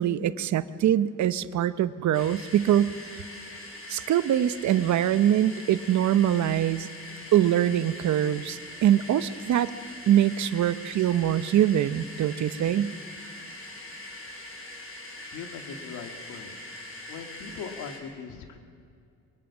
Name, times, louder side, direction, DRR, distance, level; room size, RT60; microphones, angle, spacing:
voice 1, 0.0-2.9 3.9-6.9 7.3-9.7 10.1-12.9, right 11 dB, 70° right, 14 dB, 0.9 m, -23 dB
sound 1, 2.1-18.0, left 1 dB, 45° left, 5.9 m, -42 dB
voice 2, 15.2-16.6 17.1-18.6, left 6 dB, 85° left, 6 dB, 2.3 m, -40 dB
23.5 x 20.5 x 7.4 m, 2.4 s
cardioid pair, 90°, 30 cm